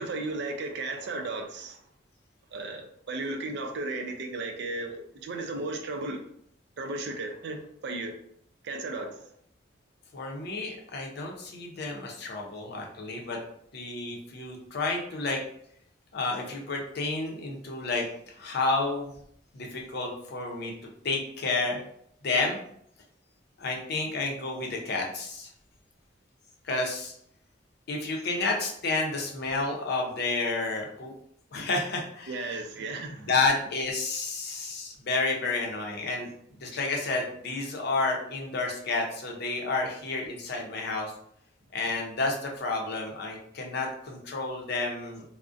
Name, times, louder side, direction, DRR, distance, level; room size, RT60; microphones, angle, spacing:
voice 1, 0.0-1.8 2.5-6.2 6.8-8.1 8.6-9.2 32.3-33.5, right 2 dB, 65° right, 0.4 m, -35 dB
voice 2, 10.1-13.4 13.7-15.4 16.1-19.1 19.5-20.7 21.0-21.8 22.2-22.6 23.6-25.5 26.6-27.1 27.9-31.1 31.5-32.6 33.2-36.3 36.6-41.1 41.7-45.2, left 3 dB, 60° left, 0.5 m, -30 dB
2.4 x 2.0 x 2.4 m
head